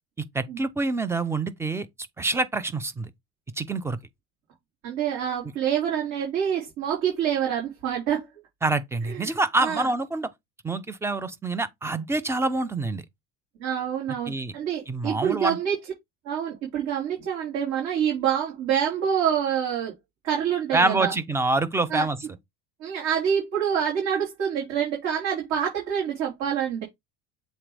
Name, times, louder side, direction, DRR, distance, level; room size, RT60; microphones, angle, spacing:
voice 1, 0.3-1.9 2.2-3.1 3.6-4.0 8.6-10.3 10.6-13.0 14.3-14.5 14.9-15.6 20.7-22.2, right 3 dB, 10° right, 0.4 m, -26 dB
voice 2, 4.8-8.3 9.1-9.3 9.6-9.9 13.6-15.8 16.3-19.9 20.2-21.1 21.9-22.1 22.8-26.8, right 8 dB, 50° right, 3.8 m, -26 dB
7.4 x 3.9 x 3.3 m
cardioid pair, 160°, 33 cm